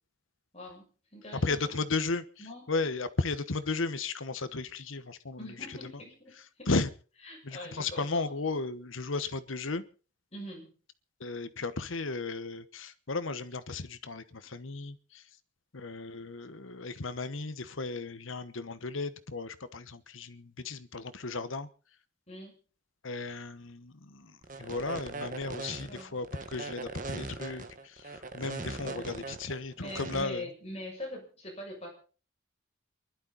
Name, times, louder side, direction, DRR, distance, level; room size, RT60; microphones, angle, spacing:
voice 1, 0.5-1.7 2.4-2.7 5.4-6.7 7.2-8.3 10.3-10.7 22.3-22.6 25.8-26.2 28.8-29.2 29.7-31.9, left 1 dB, 30° left, 6.7 m, -43 dB
voice 2, 1.4-2.2 2.7-5.5 5.8-5.9 6.7-6.9 7.4-9.8 11.2-15.2 15.7-21.7 23.0-30.4, left 3 dB, 75° left, 1.1 m, -35 dB
sound 1, 24.4-30.2, right 3 dB, 40° right, 1.5 m, -40 dB
28.5 x 12.0 x 4.1 m
head